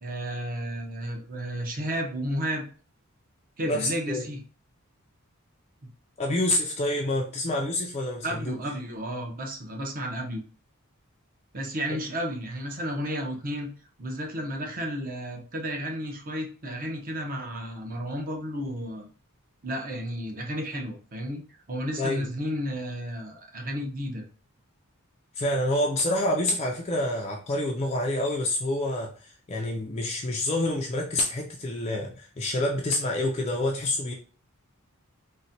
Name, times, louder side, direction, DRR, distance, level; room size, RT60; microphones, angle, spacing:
voice 1, 0.0-2.6 3.6-4.4 8.2-10.4 11.5-13.7 14.0-19.1 19.6-21.4 21.7-24.2, equal, 40° right, 2 dB, 0.7 m, -32 dB
voice 2, 3.7-4.2 6.2-8.5 22.0-22.3 25.4-34.1, left 1 dB, 30° left, 0 dB, 0.3 m, -27 dB
4.0 x 2.1 x 2.6 m, 0.39 s
head